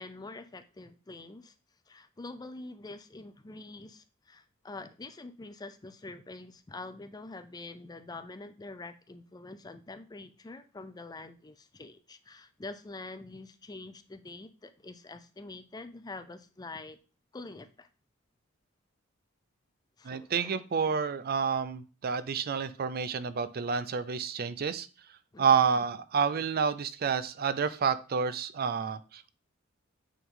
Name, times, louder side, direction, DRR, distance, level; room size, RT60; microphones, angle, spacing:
voice 1, 0.0-1.5 1.9-17.0 17.3-17.9 20.0-20.6 25.3-25.4, left 3 dB, 20° left, 10 dB, 0.4 m, -45 dB
voice 2, 20.0-24.9 25.4-29.3, right 6 dB, 45° right, 14 dB, 0.4 m, -29 dB
8.4 x 3.8 x 3.6 m, 0.34 s
head